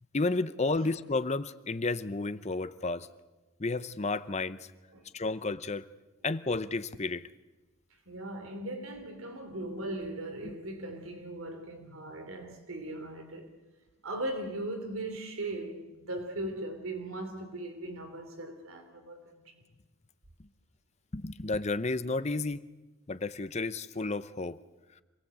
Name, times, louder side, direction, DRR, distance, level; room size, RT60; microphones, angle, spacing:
voice 1, 0.1-3.1 3.6-4.6 5.1-5.9 6.2-7.3 10.4-10.5 21.1-22.6 23.1-24.6, left 3 dB, 30° left, 0.7 m, -32 dB
voice 2, 8.1-13.5 14.0-19.5, right 1 dB, 70° right, 3.1 m, -39 dB
26.5 x 18.5 x 8.2 m
head